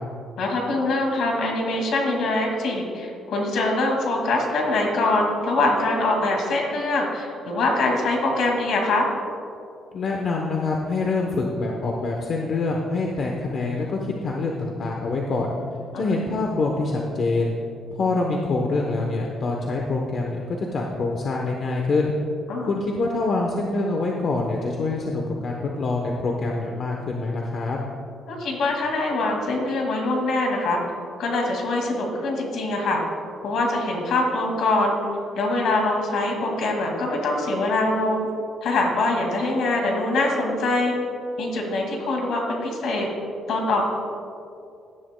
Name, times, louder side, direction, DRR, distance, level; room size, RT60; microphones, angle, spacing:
voice 1, 0.4-9.1 15.9-16.1 22.5-22.7 28.3-30.8 31.2-33.0 33.4-35.0 35.4-38.3 38.6-41.0 41.4-43.1 43.5-43.8, left 2 dB, 65° left, 1 dB, 2.1 m, -23 dB
voice 2, 9.9-15.5 16.0-17.6 17.9-22.1 22.7-27.8, left 3 dB, 40° left, 0 dB, 0.8 m, -25 dB
16.5 x 11.0 x 2.2 m, 2.5 s
cardioid pair, 175°, 0 cm